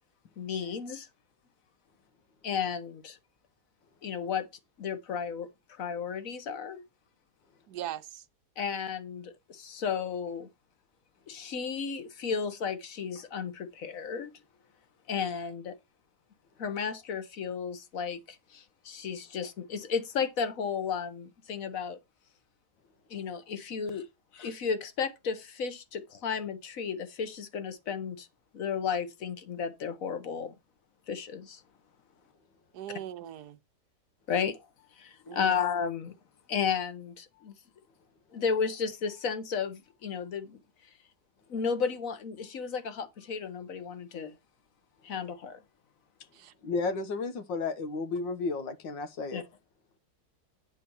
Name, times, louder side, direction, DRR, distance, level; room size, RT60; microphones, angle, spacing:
voice 1, 0.4-1.1 2.4-3.2 4.0-4.5 4.8-6.8 8.6-10.5 11.3-14.3 15.1-15.7 16.6-22.0 23.1-24.1 24.3-28.3 28.5-30.5 31.1-31.6 34.3-34.6 35.0-36.1 36.5-37.5 38.3-40.6 41.5-44.3 45.0-45.6 49.3-49.4, left 6 dB, 50° left, 1.5 m, -33 dB
voice 2, 7.7-8.2 32.7-33.6 35.3-35.5 46.4-46.5, right 11 dB, 65° right, 1.3 m, -40 dB
voice 3, 46.6-49.4, left 4 dB, 85° left, 1.9 m, -32 dB
9.2 x 4.5 x 7.1 m
omnidirectional pair, 1.9 m